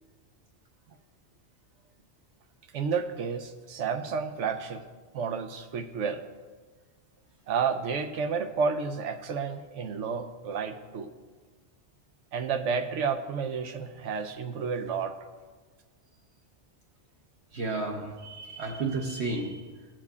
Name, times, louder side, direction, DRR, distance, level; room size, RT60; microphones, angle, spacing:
voice 1, 2.7-4.8 5.1-6.2 7.5-11.1 12.3-15.1, right 5 dB, 90° right, 8 dB, 1.0 m, -31 dB
voice 2, 17.5-19.8, right 3 dB, 70° right, 0 dB, 1.1 m, -32 dB
16.0 x 7.5 x 2.4 m, 1.4 s
omnidirectional pair, 1.2 m